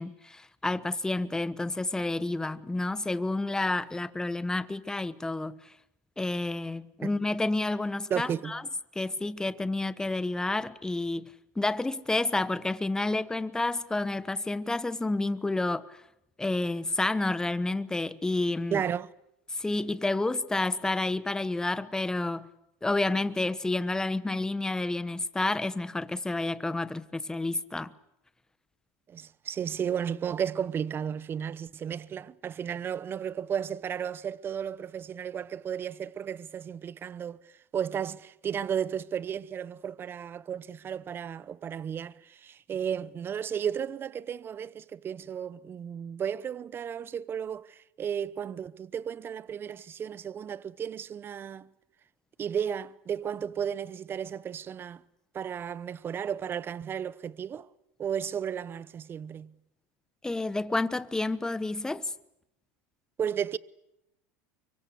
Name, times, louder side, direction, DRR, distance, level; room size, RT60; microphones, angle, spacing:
voice 1, 0.0-5.7 6.2-8.6 8.9-16.0 16.4-18.8 19.5-22.5 22.8-27.9 60.2-62.1, left 2 dB, 10° left, 1.2 m, -30 dB
voice 2, 8.1-8.6 18.7-19.1 29.1-37.4 37.7-51.7 52.4-55.0 55.3-57.7 58.0-59.5 63.2-63.6, right 8 dB, 30° right, 0.9 m, -34 dB
24.5 x 23.5 x 8.3 m
supercardioid pair, 115°, 8 cm